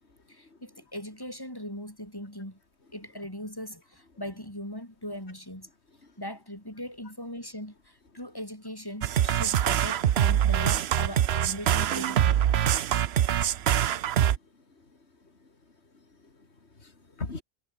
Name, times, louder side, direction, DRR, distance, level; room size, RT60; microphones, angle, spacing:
voice 1, 0.3-2.6 2.9-5.7 6.2-12.5, equal, 20° left, 7.7 m, -39 dB
sound 1, 9.0-14.4, right 10 dB, 70° right, 0.9 m, -24 dB
voice 2, 13.0-13.4 13.7-14.0 14.2-15.0 15.2-15.5 15.9-17.4, left 3 dB, 70° left, 3.3 m, -44 dB
omnidirectional pair, 1.2 m